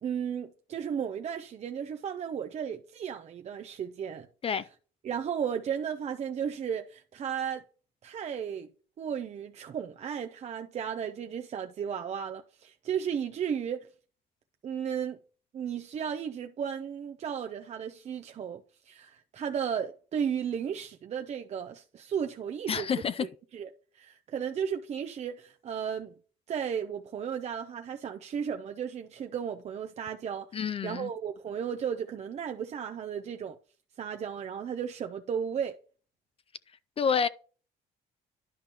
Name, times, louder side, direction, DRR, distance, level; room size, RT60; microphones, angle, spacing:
voice 1, 0.0-4.3 5.0-7.7 8.0-8.7 9.0-13.9 14.6-15.2 15.5-26.1 26.5-33.6 34.0-35.8, right 8 dB, 40° right, 0.6 m, -34 dB
voice 2, 22.7-23.3 30.5-31.1 37.0-37.3, left 7 dB, 35° left, 0.4 m, -28 dB
10.5 x 5.2 x 2.9 m
cardioid pair, 110°, 17 cm